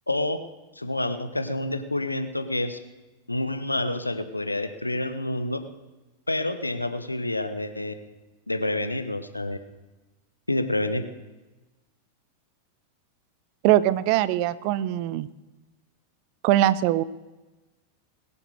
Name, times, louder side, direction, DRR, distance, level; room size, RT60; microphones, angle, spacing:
voice 1, 0.1-0.4 0.8-2.8 3.3-5.6 6.3-7.9 8.5-9.6 10.5-11.0, left 1 dB, 85° left, 9 dB, 1.0 m, -28 dB
voice 2, 13.6-15.3 16.4-17.0, right 13 dB, 45° right, 18 dB, 0.6 m, -21 dB
21.0 x 7.2 x 6.4 m, 1.1 s
figure-of-eight pair, 90°, 0 cm